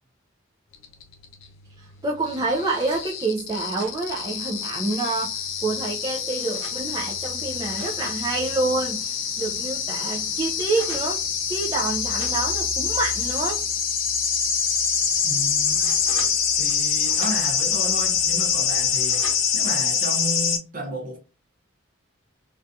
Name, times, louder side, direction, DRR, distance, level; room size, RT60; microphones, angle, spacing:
sound 1, 0.8-20.6, left 7 dB, 70° left, 0.5 m, -25 dB
sound 2, 1.8-3.1 3.5-5.1 5.7-6.8 7.4-9.2 9.5-9.6 9.9-11.2 12.0-13.9 14.2-14.3 14.9-16.8 17.0-17.7 18.2-19.7, right 1 dB, 80° right, 1.0 m, -44 dB
voice 1, 2.0-11.2 11.5-13.6, right 3 dB, 20° right, 0.3 m, -27 dB
voice 2, 15.2-15.9 16.6-19.2 19.5-21.2, right 1 dB, 40° right, 0.7 m, -33 dB
2.6 x 2.3 x 2.3 m
head